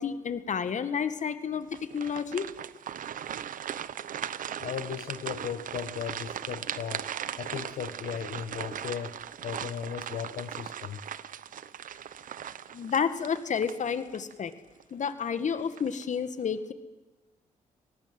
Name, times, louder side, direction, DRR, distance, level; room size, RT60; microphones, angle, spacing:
voice 1, 0.0-2.5 12.7-14.5 14.9-16.7, left 6 dB, 55° left, 12 dB, 2.1 m, -30 dB
sound 1, 1.7-14.3 14.8-14.9 15.5-16.0, right 9 dB, 65° right, 0.9 m, -38 dB
voice 2, 4.6-7.1 7.4-11.0, left 8 dB, 75° left, 9 dB, 1.4 m, -36 dB
27.0 x 19.0 x 8.0 m, 1.1 s
cardioid pair, 70°, 15 cm